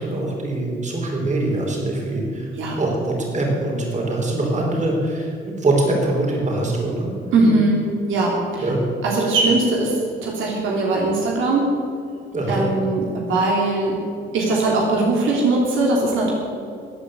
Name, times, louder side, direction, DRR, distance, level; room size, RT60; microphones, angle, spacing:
voice 1, 0.0-2.5 2.8-7.1 8.6-8.8 12.3-12.6, right 2 dB, 35° right, -1 dB, 4.6 m, -23 dB
voice 2, 7.3-8.7 9.0-11.7 12.5-14.0 14.3-16.3, right 2 dB, 80° right, -2 dB, 3.2 m, -20 dB
15.0 x 9.0 x 8.2 m, 2.4 s
cardioid pair, 90°, 20 cm